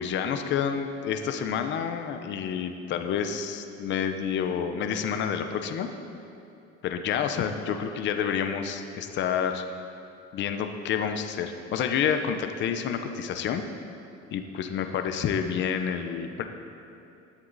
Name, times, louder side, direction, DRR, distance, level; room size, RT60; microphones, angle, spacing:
voice 1, 0.0-5.9 6.8-9.7 10.3-13.6 14.3-16.4, left 7 dB, 40° left, 6 dB, 0.7 m, -29 dB
16.0 x 11.0 x 4.0 m, 2.7 s
cardioid pair, 170°, 29 cm